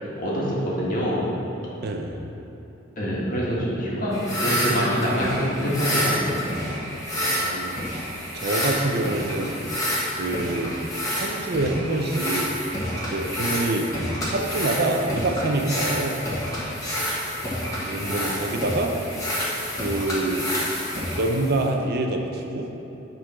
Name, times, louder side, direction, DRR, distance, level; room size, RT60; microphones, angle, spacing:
voice 1, 0.0-1.3 3.0-6.5 18.0-18.4, equal, 45° left, -6 dB, 1.8 m, -25 dB
voice 2, 1.8-2.2 3.4-3.7 7.1-7.8 8.3-9.5 10.1-10.7 11.1-12.5 13.1-13.9 14.3-16.2 17.8-18.9 19.7-20.5 21.2-22.7, right 2 dB, 55° right, 3 dB, 0.6 m, -26 dB
sound 1, 4.1-21.7, equal, 20° left, 1.5 m, -28 dB
9.2 x 3.9 x 5.7 m, 3.0 s
head